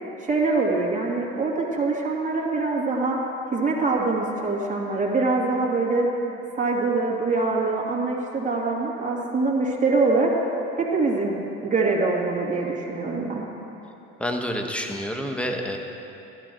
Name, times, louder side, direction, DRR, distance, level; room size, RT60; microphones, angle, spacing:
voice 1, 0.2-3.2 3.5-6.1 6.5-10.3 10.8-11.4 11.6-13.5, right 3 dB, 25° right, -3 dB, 2.5 m, -24 dB
voice 2, 14.2-15.8, equal, 5° left, 3 dB, 1.4 m, -28 dB
12.5 x 12.0 x 4.6 m, 3.0 s
hypercardioid pair, 65°, 31 cm